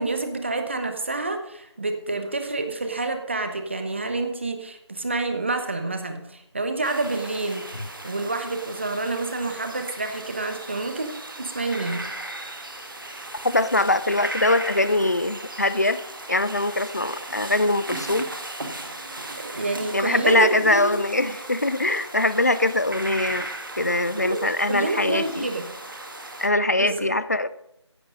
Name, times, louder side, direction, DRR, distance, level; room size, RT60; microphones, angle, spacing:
voice 1, 0.0-7.7 8.0-11.1 11.4-12.1 19.2-21.0 24.2-24.4 24.7-25.7 26.8-27.2, right 3 dB, 25° right, 7 dB, 1.0 m, -28 dB
sound 1, 6.8-26.5, right 2 dB, 45° right, 1.8 m, -37 dB
voice 2, 13.4-16.0 16.3-18.2 19.9-23.5 23.8-25.5 26.4-27.5, left 2 dB, 35° left, 15 dB, 0.5 m, -22 dB
15.0 x 11.0 x 5.3 m, 0.81 s
figure-of-eight pair, 170°, 15 cm